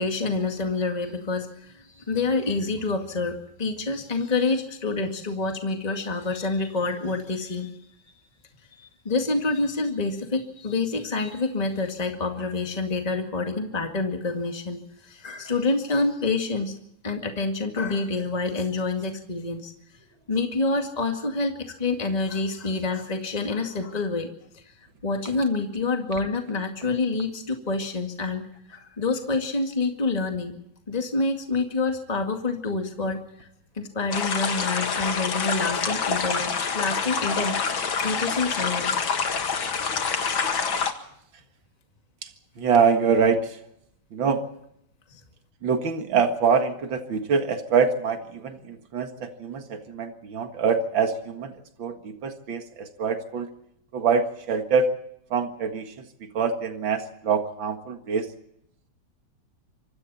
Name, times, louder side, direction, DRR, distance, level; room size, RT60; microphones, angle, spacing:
voice 1, 0.0-7.7 8.8-16.7 17.0-19.7 20.3-24.3 24.5-24.6 25.0-28.4 28.7-30.6 30.9-33.5 33.7-37.6 38.0-39.1 39.5-39.7 45.1-45.2, left 3 dB, 20° left, 4 dB, 2.2 m, -27 dB
sound 1, 34.1-40.9, left 5 dB, 80° left, 2.6 m, -26 dB
voice 2, 42.6-43.6 44.1-44.4 45.6-53.5 53.9-54.9 55.3-58.3, right 5 dB, 75° right, 6 dB, 2.5 m, -25 dB
26.0 x 24.5 x 4.3 m, 0.76 s
omnidirectional pair, 2.1 m